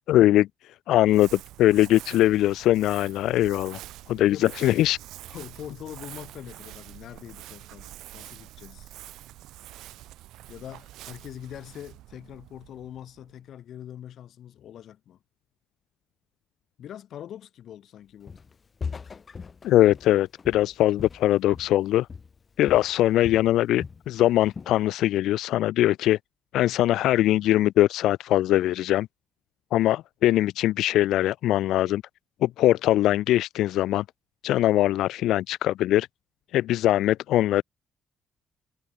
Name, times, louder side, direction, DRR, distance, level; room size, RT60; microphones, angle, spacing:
voice 1, 0.1-0.5 0.9-3.8 4.1-5.0 19.6-22.1 22.6-26.2 26.5-29.1 29.7-32.0 32.4-34.0 34.4-36.1 36.5-37.6, left 14 dB, 85° left, 0.4 m, -21 dB
Crumpling crinkling, 0.9-13.4, right 15 dB, 90° right, 6.2 m, -46 dB
voice 2, 4.1-4.5 5.3-8.9 10.5-15.2 16.8-18.4, left 10 dB, 70° left, 3.5 m, -43 dB
Walk footsteps, 18.3-18.5 18.8-21.8 22.1-22.4 22.7-24.1 24.4-24.8, left 5 dB, 40° left, 1.8 m, -39 dB
cardioid pair, 90°, 0 cm